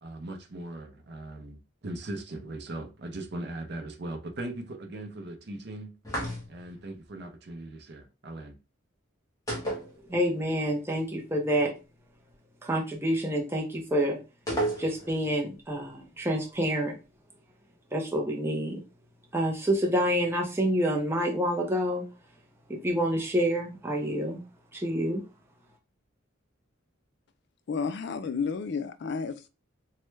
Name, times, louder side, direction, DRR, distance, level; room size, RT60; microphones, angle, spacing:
voice 1, 0.0-5.9 6.5-8.6, right 1 dB, 55° right, 0.6 m, -39 dB
sound 1, 6.0-6.8 9.5-10.5 10.8-10.9 14.5-15.3, right 1 dB, 15° left, 0.9 m, -32 dB
voice 2, 10.1-11.7 12.6-14.2 14.8-17.0 17.9-18.8 19.3-22.0 22.7-24.4 24.7-25.3, equal, 10° right, 0.6 m, -28 dB
voice 3, 27.7-29.5, left 5 dB, 55° left, 0.4 m, -31 dB
3.2 x 2.2 x 3.1 m
head